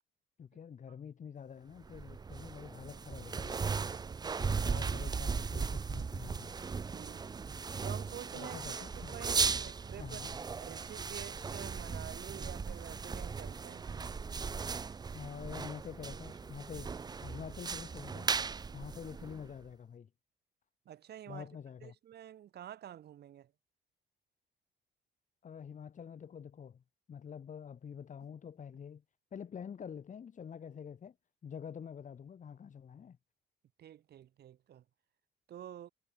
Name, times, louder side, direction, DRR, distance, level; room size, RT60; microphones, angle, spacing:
voice 1, 0.4-3.7 4.4-6.5 8.3-9.2 10.0-10.4 15.1-18.4 18.7-20.1 21.3-21.9 25.4-26.8 27.1-29.0 29.3-31.2 31.4-33.2, left 7 dB, 45° left, 2.5 m, -47 dB
sound 1, 1.8-19.7, right 5 dB, 25° right, 0.5 m, -37 dB
voice 2, 6.9-7.3 7.8-8.8 9.1-10.2 10.6-13.9 20.9-21.5 21.8-23.5 33.8-34.8 35.5-35.9, right 11 dB, 65° right, 6.0 m, -48 dB
cardioid pair, 100°, 18 cm